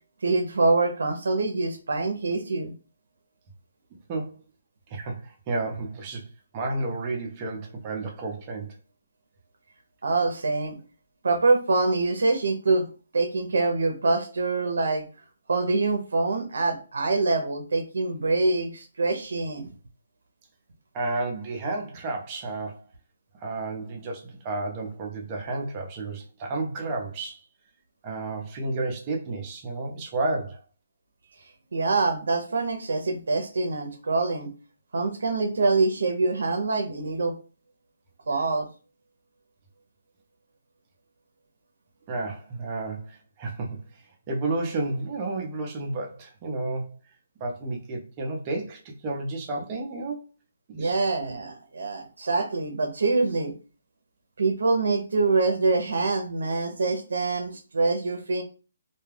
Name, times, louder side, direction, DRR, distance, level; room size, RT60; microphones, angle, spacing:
voice 1, 0.2-2.7 10.0-10.8 11.2-12.8 13.1-15.0 15.5-19.7 31.7-34.5 34.9-37.3 38.3-38.7 50.8-53.5 54.4-58.4, right 3 dB, 75° right, 4 dB, 0.6 m, -25 dB
voice 2, 4.9-6.2 6.5-8.8 20.9-22.8 23.4-27.4 28.0-30.6 42.1-46.9 47.4-50.2 50.7-50.9, right 2 dB, 25° right, 1 dB, 0.5 m, -31 dB
2.2 x 2.2 x 3.3 m, 0.35 s
hypercardioid pair, 165°, 0 cm